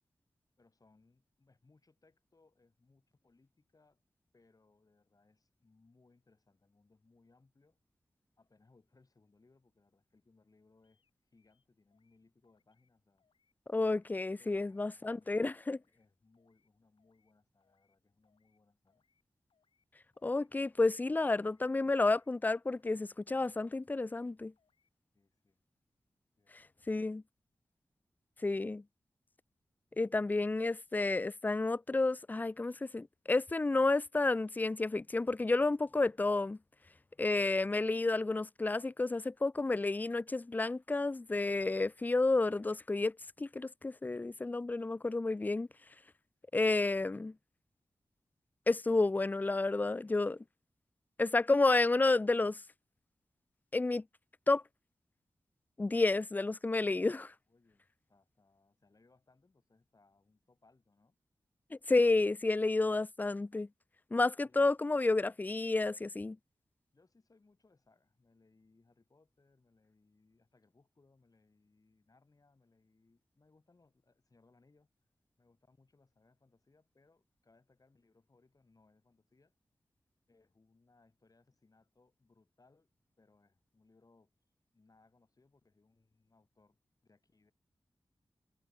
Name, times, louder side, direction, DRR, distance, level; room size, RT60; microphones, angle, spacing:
voice 1, 0.6-4.0 4.3-7.8 8.4-13.3 14.4-15.6 15.9-19.0 25.1-25.6 26.4-27.0 57.5-61.2 64.2-64.7 66.9-74.9 75.4-79.5 80.3-82.9 83.2-84.3 84.7-86.8 87.0-87.5, left 3 dB, 45° left, 8.0 m, -69 dB
sound 1, 10.8-11.1 11.4-12.2 12.4-12.9 13.2-13.5 13.8-14.2 14.4-14.8 15.1-15.4 15.7-16.1 16.3-16.7 17.0-17.3 17.6-18.0 18.2-18.6 18.9-19.2 19.5-19.9 20.1-20.5 20.8-21.1 21.4-21.7 22.0-22.4 22.7-23.0 23.3-23.6 23.9-24.3 24.6-24.9, left 6 dB, 85° left, 6.6 m, -79 dB
voice 2, 13.7-15.8 20.2-24.5 26.9-27.2 28.4-28.8 30.0-36.6 37.2-45.7 46.5-47.3 48.7-50.4 51.2-52.6 53.7-54.0 54.5-54.6 55.8-57.3 61.7-63.7 64.1-66.4, left 3 dB, 20° left, 0.3 m, -31 dB
cardioid pair, 60°, 9 cm